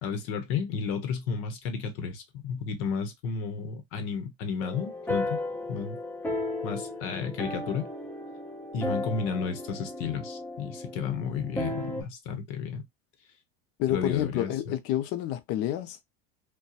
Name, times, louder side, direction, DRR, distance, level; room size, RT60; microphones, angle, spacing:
voice 1, 0.0-5.4 5.7-6.0 6.6-7.9 8.7-12.8 13.9-14.5, left 6 dB, 65° left, 0.9 m, -32 dB
sound 1, 4.6-12.0, left 2 dB, 5° left, 0.5 m, -35 dB
voice 2, 13.8-16.0, left 13 dB, 50° left, 0.6 m, -29 dB
2.7 x 2.2 x 2.3 m
supercardioid pair, 140°, 31 cm